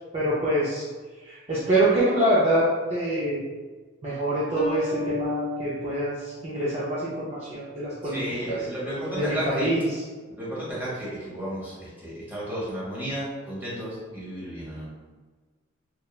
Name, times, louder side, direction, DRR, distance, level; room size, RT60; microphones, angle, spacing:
voice 1, 0.1-0.9 1.2-3.4 4.0-8.6 9.1-9.9, right 1 dB, 30° right, -9 dB, 0.4 m, -25 dB
sound 1, 4.6-7.2, left 3 dB, 50° left, 0.5 m, -33 dB
voice 2, 8.0-9.7 10.3-14.9, right 1 dB, 10° right, -9 dB, 0.9 m, -33 dB
2.9 x 2.2 x 2.3 m, 1.4 s
head